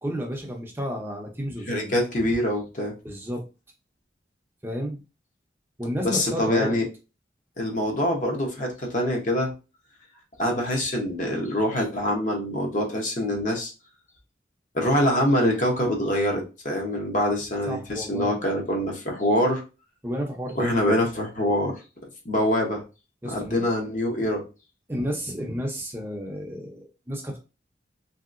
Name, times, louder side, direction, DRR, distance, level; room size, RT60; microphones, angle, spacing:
voice 1, 0.0-1.9 3.0-3.5 4.6-5.0 5.8-6.8 17.7-18.4 20.0-21.0 23.2-23.6 24.9-27.4, equal, 15° right, 0 dB, 0.5 m, -31 dB
voice 2, 1.7-2.9 6.0-6.9 7.6-9.5 10.4-13.7 14.7-19.6 20.6-21.8 22.2-22.8 23.2-24.4, left 1 dB, 45° left, 1 dB, 0.8 m, -25 dB
3.0 x 2.8 x 2.5 m, 0.30 s
head